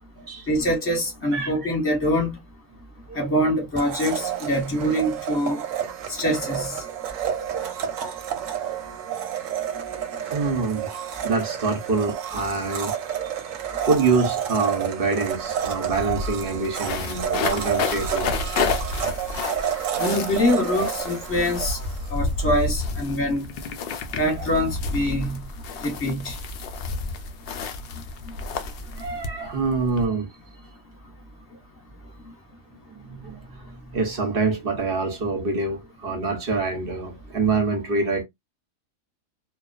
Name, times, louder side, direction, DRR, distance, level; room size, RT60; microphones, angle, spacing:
voice 1, 0.5-2.4 3.1-5.6 6.1-6.8 20.0-21.8 22.1-23.4 24.2-25.4 25.8-26.3, equal, 10° left, 0.9 m, -24 dB
Domestic sounds home sounds, 3.8-22.5, right 9 dB, 70° right, 0.9 m, -30 dB
voice 2, 7.2-7.7 10.2-10.9 11.2-13.0 13.2-13.3 13.8-18.3 19.8-19.9 29.0-30.3 32.9-38.2, right 4 dB, 50° right, 0.8 m, -26 dB
sound 1, 15.3-15.4 15.6-30.1, left 4 dB, 85° left, 0.5 m, -31 dB
2.3 x 2.3 x 2.4 m
omnidirectional pair, 1.5 m